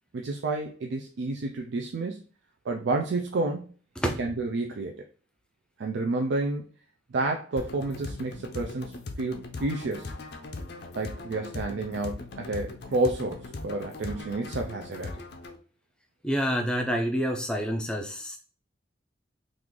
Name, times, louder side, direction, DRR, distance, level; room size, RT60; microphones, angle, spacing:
voice 1, 0.1-2.2 2.7-3.7 4.2-5.0 5.8-6.7 7.1-10.1 11.0-15.2, right 2 dB, 65° right, 3 dB, 0.4 m, -30 dB
sound 1, 7.6-15.6, left 2 dB, 55° left, 0.5 m, -39 dB
voice 2, 16.2-18.4, equal, 5° left, 2 dB, 0.5 m, -28 dB
3.1 x 2.5 x 3.6 m, 0.37 s
head